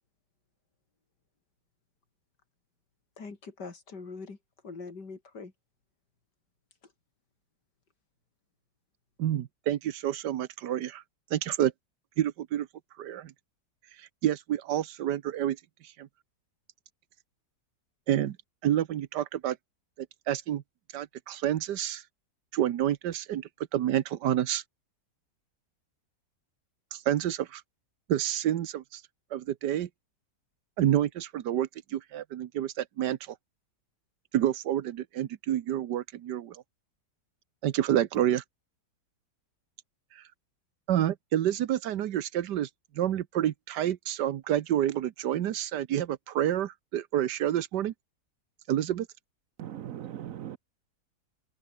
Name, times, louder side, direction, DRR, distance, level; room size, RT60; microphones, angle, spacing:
voice 1, 3.2-4.4 4.6-5.5 6.8-6.9, left 4 dB, 80° left, 3.9 m, -42 dB
voice 2, 9.2-11.0 11.3-11.7 12.2-12.7 13.0-13.3 14.0-15.6 16.0-16.1 18.1-18.4 18.6-19.6 20.3-20.6 20.9-22.0 22.5-24.6 26.9-27.6 28.1-29.0 29.3-29.9 30.8-33.3 34.3-36.6 37.6-38.4 40.2-40.3 40.9-42.7 42.9-47.9 48.7-49.1, right 11 dB, 80° right, 1.5 m, -28 dB
voice 3, 49.6-50.6, right 11 dB, 65° right, 1.0 m, -39 dB
omnidirectional pair, 1.8 m